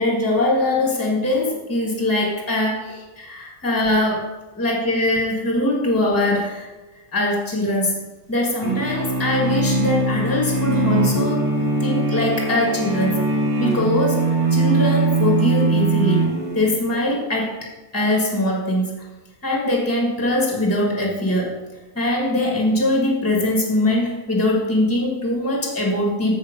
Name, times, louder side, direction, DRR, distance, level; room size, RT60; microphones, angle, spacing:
voice 1, 0.0-4.3 4.5-6.7 7.1-13.2 13.6-16.3 16.5-19.1 19.4-21.6 21.9-26.3, left 1 dB, 10° left, -2 dB, 1.5 m, -22 dB
sound 1, 8.6-16.9, right 3 dB, 35° right, 1.4 m, -21 dB
7.4 x 6.6 x 5.1 m, 1.1 s
omnidirectional pair, 1.5 m